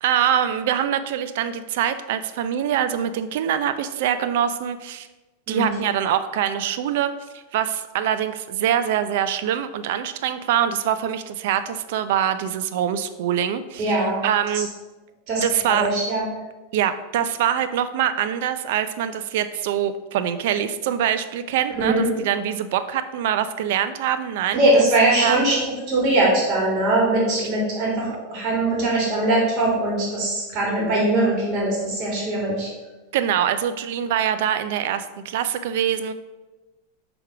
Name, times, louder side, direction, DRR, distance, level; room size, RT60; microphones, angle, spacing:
voice 1, 0.0-5.1 5.5-14.7 15.4-15.9 16.7-24.9 25.2-25.5 33.1-36.1, right 9 dB, 65° right, 11 dB, 0.4 m, -24 dB
voice 2, 13.8-14.2 15.3-16.2 21.8-22.1 24.5-25.5 25.9-32.7, right 2 dB, 40° right, -4 dB, 2.1 m, -21 dB
5.9 x 3.5 x 4.7 m, 1.1 s
supercardioid pair, 140°, 0 cm